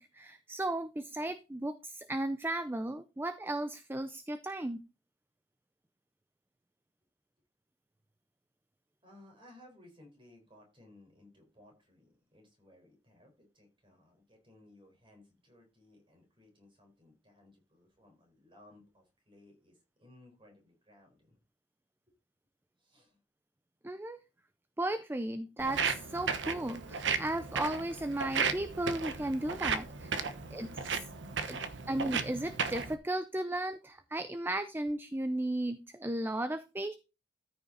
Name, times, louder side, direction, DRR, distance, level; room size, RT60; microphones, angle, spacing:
voice 1, 0.0-4.8 23.8-24.2 24.8-30.1 30.5-31.0 31.5-31.6 31.9-36.9, right 1 dB, 10° right, 11 dB, 0.5 m, -35 dB
voice 2, 9.0-21.4 22.1-22.2 22.8-23.2, left 1 dB, 30° right, 2 dB, 4.6 m, -60 dB
Walk footsteps, 25.6-32.9, right 5 dB, 85° right, 1.0 m, -35 dB
13.5 x 5.8 x 4.0 m, 0.30 s
head